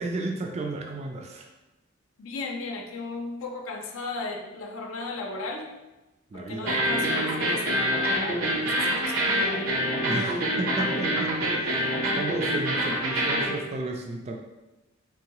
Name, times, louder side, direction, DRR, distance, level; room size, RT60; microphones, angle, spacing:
voice 1, 0.0-1.5 6.3-6.8 10.0-14.4, right 2 dB, 30° right, 2 dB, 0.3 m, -33 dB
voice 2, 2.2-5.7 6.3-9.8, left 3 dB, 80° left, 2 dB, 0.5 m, -36 dB
sound 1, 6.7-13.5, equal, 80° right, 0.9 m, -26 dB
3.6 x 3.5 x 2.9 m, 1.0 s
head